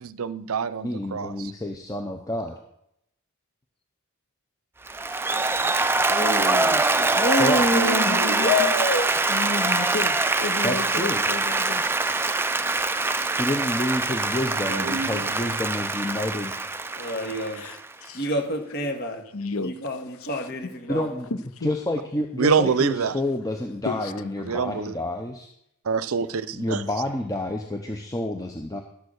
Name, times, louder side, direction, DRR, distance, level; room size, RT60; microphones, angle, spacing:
voice 1, 0.0-1.5 14.7-15.2 22.4-23.2 24.4-25.0 25.9-26.8, right 5 dB, 70° right, 0.6 m, -26 dB
voice 2, 0.8-2.6 7.4-7.7 10.6-11.2 13.4-16.5 20.9-21.3 21.6-25.5 26.5-28.8, left 1 dB, 15° left, 0.7 m, -29 dB
Applause, 4.9-18.1, right 3 dB, 10° right, 0.4 m, -24 dB
voice 3, 6.1-9.1 17.0-17.6 18.1-19.2 19.6-21.1, left 1 dB, 45° left, 1.8 m, -27 dB
voice 4, 7.7-8.5 9.3-11.9 12.1-12.3 17.6-18.3 19.3-19.7 20.3-20.4 21.6-21.7 23.8-24.3, left 3 dB, 70° left, 0.7 m, -32 dB
11.5 x 6.9 x 6.5 m
head